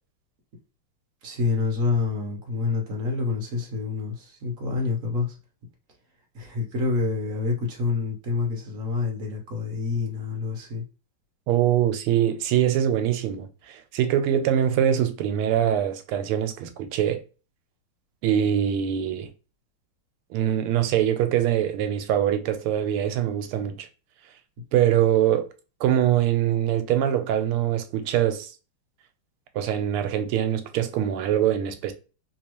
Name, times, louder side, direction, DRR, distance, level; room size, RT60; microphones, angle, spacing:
voice 1, 1.2-5.3 6.3-10.8, left 4 dB, 50° right, 1.0 m, -27 dB
voice 2, 11.5-17.2 18.2-19.3 20.3-23.9 24.7-25.5 25.8-28.5 29.5-31.9, right 10 dB, 85° right, 1.5 m, -23 dB
3.4 x 3.0 x 2.9 m
omnidirectional pair, 2.4 m